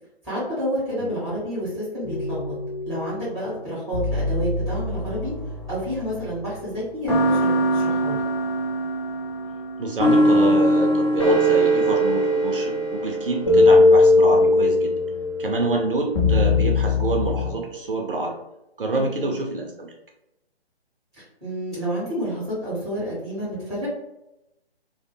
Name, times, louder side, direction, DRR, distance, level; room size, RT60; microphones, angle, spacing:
voice 1, 0.2-2.5 2.8-5.3 5.7-8.2 18.9-19.3 21.2-23.9, equal, ahead, -10 dB, 0.8 m, -29 dB
sound 1, 2.0-3.2 3.9-6.5 7.1-17.5, left 1 dB, 30° left, 0.5 m, -20 dB
voice 2, 9.8-14.9 15.4-18.3 18.8-19.9, right 2 dB, 60° right, 1 dB, 0.5 m, -27 dB
2.2 x 2.1 x 2.9 m, 0.90 s
figure-of-eight pair, 140°, 32 cm